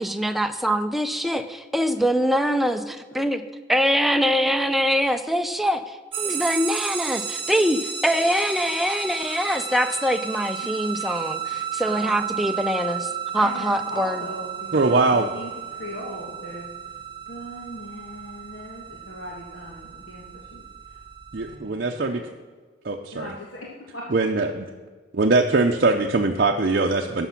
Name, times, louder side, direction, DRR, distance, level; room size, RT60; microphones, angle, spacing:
voice 1, 0.0-3.4 3.7-14.2, equal, ahead, 7 dB, 0.5 m, -24 dB
sound 1, 6.1-21.5, right 7 dB, 30° right, 1.4 m, -33 dB
voice 2, 11.8-12.5 13.4-16.6 17.3-21.0 21.4-22.3 23.1-24.2, equal, 75° left, -3 dB, 1.7 m, -39 dB
voice 3, 14.7-15.3 21.3-22.2 22.8-23.3 24.1-24.7 25.1-27.3, right 3 dB, 55° right, 1 dB, 0.6 m, -21 dB
12.0 x 7.0 x 5.9 m, 1.4 s
head